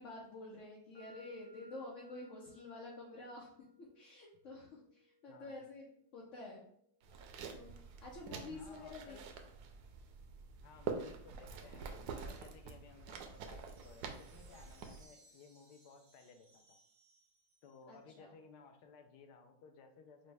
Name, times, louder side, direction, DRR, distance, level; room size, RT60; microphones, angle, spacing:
voice 1, 0.0-3.5 3.9-5.9 6.1-6.6 7.5-7.7 8.0-9.2 17.9-18.3, left 2 dB, 60° left, -3 dB, 1.0 m, -49 dB
sound 1, 0.9-8.8, left 1 dB, 30° left, 0.4 m, -65 dB
voice 2, 5.3-5.7 8.5-9.2 10.6-16.8 17.6-20.3, left 5 dB, 90° left, 6 dB, 1.2 m, -59 dB
sound 2, 7.0-15.0, right 5 dB, 80° right, 1.2 m, -47 dB
sound 3, 13.3-18.0, right 3 dB, 55° right, 1.4 m, -67 dB
5.1 x 2.2 x 3.3 m, 0.68 s
omnidirectional pair, 1.7 m